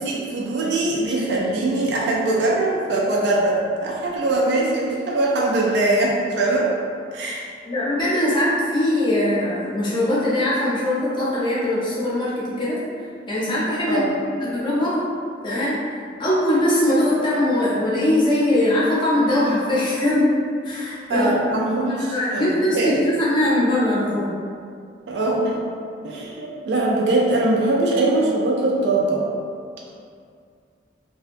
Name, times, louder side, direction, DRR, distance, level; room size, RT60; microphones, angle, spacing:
voice 1, 0.0-6.7 7.1-7.5 13.9-14.1 21.1-23.0 25.1-25.6 26.0-29.3, right 2 dB, 70° right, -4 dB, 0.4 m, -22 dB
voice 2, 7.7-12.8 13.3-14.0 14.3-15.0 15.4-15.8 16.2-20.4 20.6-21.3 21.8-24.3, left 1 dB, 25° left, -8 dB, 0.6 m, -21 dB
2.7 x 2.1 x 2.5 m, 2.3 s
head